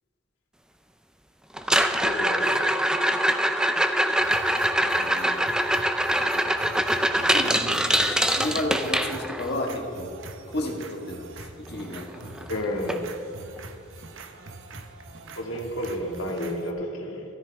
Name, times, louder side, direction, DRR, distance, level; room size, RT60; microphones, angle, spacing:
sound 1, 1.6-9.5 11.8-11.9 12.1-12.5 12.9-13.0 13.6-13.7 15.5-15.6, right 1 dB, 5° right, 0.4 m, -23 dB
voice 1, 2.0-2.8 12.5-13.0 15.4-17.2, equal, 75° left, 0 dB, 1.9 m, -31 dB
sound 2, 4.2-16.7, right 3 dB, 70° right, 0.8 m, -43 dB
voice 2, 4.9-5.4 6.2-6.7 7.3-10.1 10.5-12.7, left 1 dB, 50° left, 1 dB, 1.6 m, -33 dB
13.5 x 13.0 x 3.5 m, 2.5 s
head